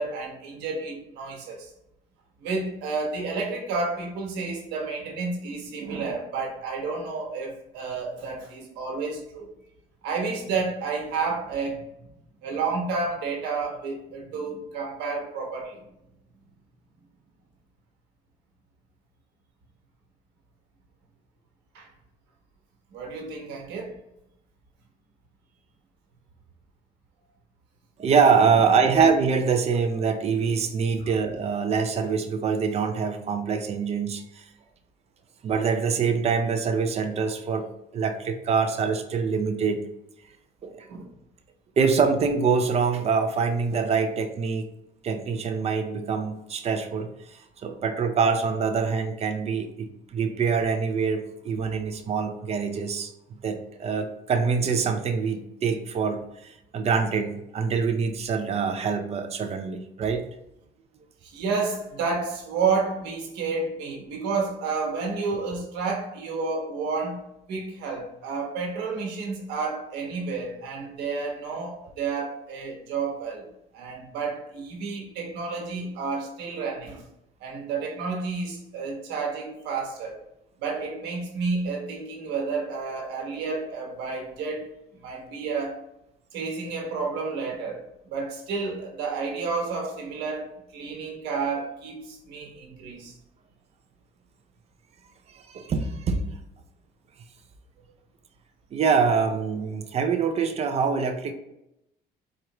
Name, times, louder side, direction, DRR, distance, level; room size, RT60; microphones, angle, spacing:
voice 1, 0.0-1.7 2.4-9.5 10.0-11.8 12.4-15.8 21.7-21.9 22.9-23.9 31.0-31.1 40.9-41.1 61.2-67.2 67.5-73.5 73.7-77.0 77.4-80.2 80.6-84.8 85.0-85.8 86.3-93.1, right 4 dB, 90° right, 1.1 m, -30 dB
voice 2, 28.0-34.4 35.4-37.7 37.9-39.8 40.6-40.8 41.8-44.7 45.0-53.1 53.4-60.2 95.5-96.2 98.7-101.3, right 5 dB, 40° right, 0.5 m, -25 dB
4.4 x 2.5 x 2.9 m
cardioid pair, 110°, 17 cm